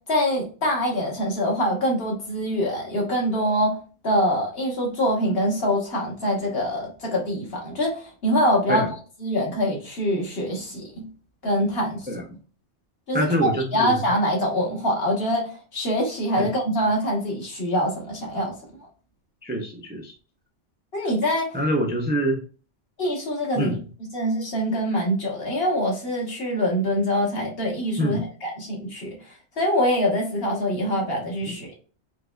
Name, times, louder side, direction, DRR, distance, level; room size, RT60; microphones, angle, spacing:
voice 1, 0.1-3.8 4.0-8.9 9.2-11.0 11.4-12.2 13.1-18.5 20.9-21.5 23.0-23.8 24.1-31.8, equal, 55° left, -1 dB, 1.4 m, -24 dB
voice 2, 13.1-14.0 16.4-16.5 19.4-20.1 21.5-22.4 23.6-23.8 28.0-28.2, equal, 15° right, 0 dB, 0.3 m, -25 dB
4.6 x 2.3 x 2.3 m, 0.37 s
omnidirectional pair, 1.2 m